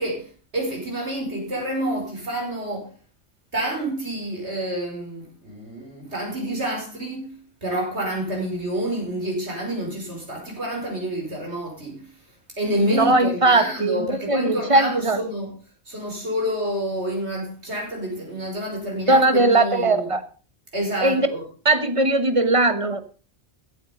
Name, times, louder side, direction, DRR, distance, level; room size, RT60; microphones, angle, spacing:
voice 1, 0.0-2.9 3.5-12.1 12.6-15.5 15.9-20.1 20.7-21.4, right 1 dB, 75° right, 5.6 m, -28 dB
voice 2, 12.9-15.2 19.1-20.2 21.0-21.3 21.6-23.0, right 2 dB, 30° right, 1.3 m, -19 dB
15.5 x 8.5 x 5.1 m
omnidirectional pair, 1.1 m